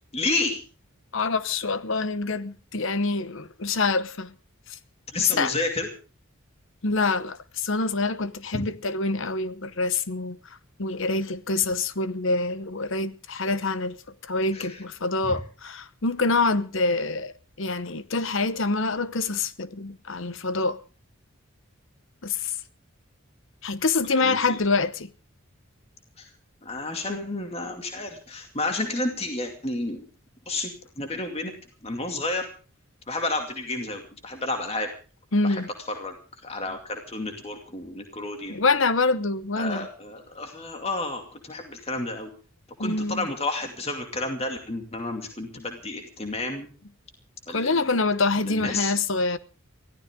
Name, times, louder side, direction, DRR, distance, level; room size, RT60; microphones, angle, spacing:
voice 1, 0.1-0.6 5.1-5.9 8.5-8.6 14.5-14.8 15.2-15.4 24.1-24.6 26.2-26.3 26.6-30.0 30.5-30.7 31.0-31.5 31.8-32.5 33.1-34.9 35.4-35.6 35.9-36.1 36.4-38.6 39.6-42.3 42.8-46.7 47.5-47.9 48.4-48.9, left 2 dB, 30° left, 2.5 m, -31 dB
voice 2, 1.1-4.3 4.7-4.8 5.2-5.5 6.8-10.4 10.8-14.0 14.2-20.8 22.2-22.5 23.6-25.1 35.3-35.7 38.5-39.9 42.8-43.3 47.5-49.4, left 3 dB, 65° left, 0.9 m, -26 dB
23.5 x 16.0 x 3.7 m
head